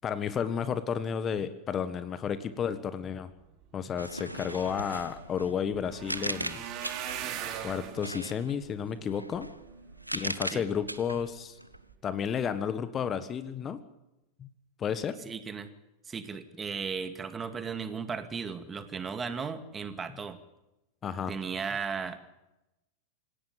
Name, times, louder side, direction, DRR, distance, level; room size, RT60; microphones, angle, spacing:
voice 1, 0.0-3.3 3.7-6.6 7.6-9.5 10.1-11.6 12.0-13.8 14.4-14.5 14.8-15.2 21.0-21.3, left 7 dB, 25° left, 13 dB, 1.5 m, -32 dB
sound 1, 3.6-3.7 3.9-10.3 10.9-11.3 11.7-11.9 12.2-12.3, right 10 dB, 40° right, 3.5 m, -42 dB
sound 2, 4.0-7.4 7.9-11.9, right 1 dB, 90° right, 1.0 m, -39 dB
voice 2, 15.3-15.7 16.1-20.4 21.3-22.2, right 5 dB, 20° right, 10 dB, 2.2 m, -36 dB
26.5 x 17.0 x 9.2 m, 0.95 s
figure-of-eight pair, 90°, 0 cm